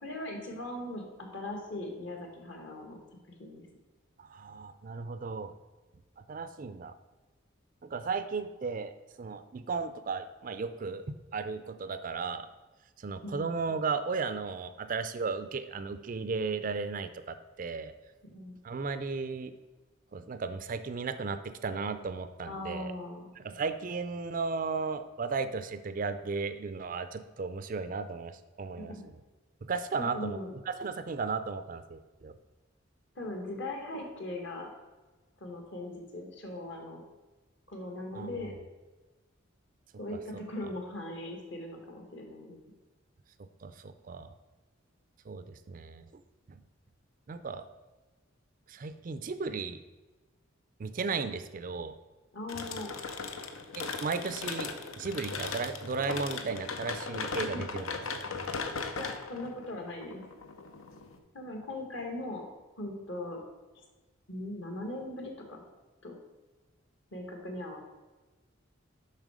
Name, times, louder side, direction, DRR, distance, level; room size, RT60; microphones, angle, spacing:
voice 1, 0.0-3.0 3.3-3.7 13.2-13.5 18.3-18.5 22.5-23.3 28.8-29.0 30.0-30.5 33.1-34.7 35.4-37.0 37.7-38.5 40.0-42.6 52.3-52.9 57.4-57.6 59.0-60.2 61.3-62.5 62.8-63.4 64.3-65.6 66.0-66.1 67.1-67.8, left 1 dB, 60° left, 2 dB, 1.6 m, -39 dB
voice 2, 4.2-5.5 6.3-7.0 7.8-8.9 9.2-12.5 13.0-17.9 18.6-19.5 20.1-22.9 23.4-28.9 29.7-30.4 30.7-32.3 38.1-38.4 43.6-44.3 45.3-46.2 46.5-46.6 47.3-47.6 48.7-49.8 50.8-52.0 53.7-57.9, right 4 dB, 40° right, 11 dB, 0.4 m, -35 dB
sound 1, 52.5-61.2, left 4 dB, 85° left, 0.7 m, -38 dB
7.4 x 5.6 x 4.9 m, 1.2 s
head